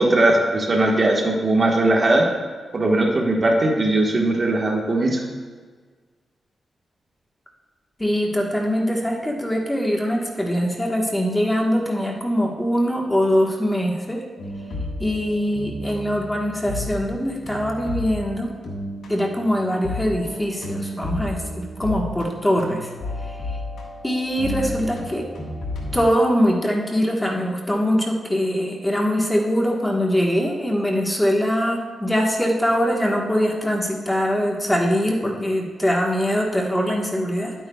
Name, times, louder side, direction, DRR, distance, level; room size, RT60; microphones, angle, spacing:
voice 1, 0.0-2.3 2.7-5.2, right 2 dB, 40° right, 0 dB, 1.3 m, -19 dB
voice 2, 8.0-14.2 15.0-18.5 19.1-22.9 24.0-25.2 25.9-37.5, equal, 10° left, 0 dB, 1.3 m, -22 dB
sound 1, 14.4-26.1, left 1 dB, 85° left, 1.5 m, -32 dB
10.5 x 9.1 x 2.3 m, 1.5 s
cardioid pair, 85°, 0 cm